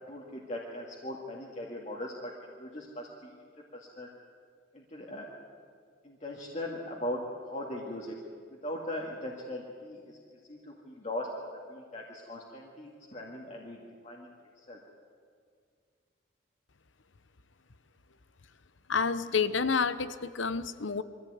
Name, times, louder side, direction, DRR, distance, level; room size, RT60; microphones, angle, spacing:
voice 1, 0.1-3.3 3.7-4.1 4.7-5.3 6.0-8.2 8.6-10.2 10.5-11.3 11.7-14.3 14.7-14.8, left 1 dB, 35° left, -3 dB, 2.2 m, -39 dB
voice 2, 18.9-21.0, left 5 dB, 75° left, 14 dB, 0.9 m, -29 dB
23.5 x 15.0 x 9.5 m, 2.1 s
head